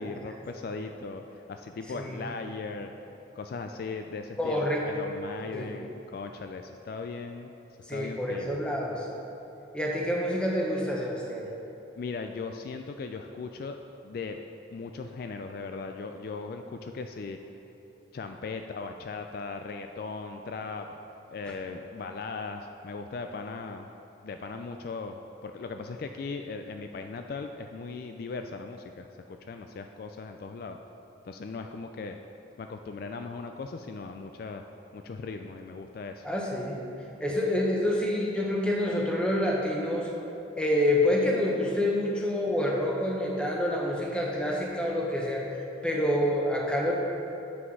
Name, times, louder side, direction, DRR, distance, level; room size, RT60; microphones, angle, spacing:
voice 1, 0.0-2.9 3.3-7.5 7.9-8.6 12.0-13.8 14.0-14.4 14.7-17.4 18.1-20.9 21.3-23.9 24.2-30.8 31.2-32.2 32.6-34.7 34.9-36.3 37.3-37.4, left 4 dB, 50° left, 5 dB, 0.3 m, -38 dB
voice 2, 4.4-5.1 5.5-5.7 7.9-9.1 9.7-11.5 36.2-36.8 37.2-40.1 40.6-46.9, left 1 dB, 5° left, -2 dB, 0.8 m, -27 dB
7.9 x 6.1 x 4.7 m, 3.0 s
head